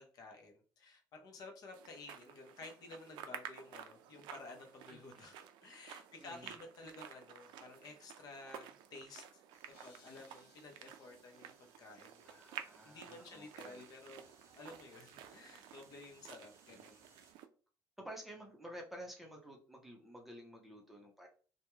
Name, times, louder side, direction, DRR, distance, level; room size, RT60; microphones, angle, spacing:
voice 1, 0.0-5.4 5.6-9.4 9.8-12.4 12.8-14.3 14.5-17.1, left 3 dB, 55° left, 3 dB, 0.7 m, -53 dB
sound 1, 1.7-17.5, right 9 dB, 80° right, 0.3 m, -53 dB
voice 2, 6.2-6.5 12.2-13.9 16.7-16.9 18.0-21.3, right 1 dB, 5° right, 0 dB, 0.6 m, -51 dB
sound 2, 9.5-17.3, right 4 dB, 40° right, 0.7 m, -68 dB
sound 3, 9.7-11.8, left 4 dB, 90° left, 0.9 m, -68 dB
2.2 x 2.2 x 3.0 m, 0.38 s
cardioid pair, 130°, 8 cm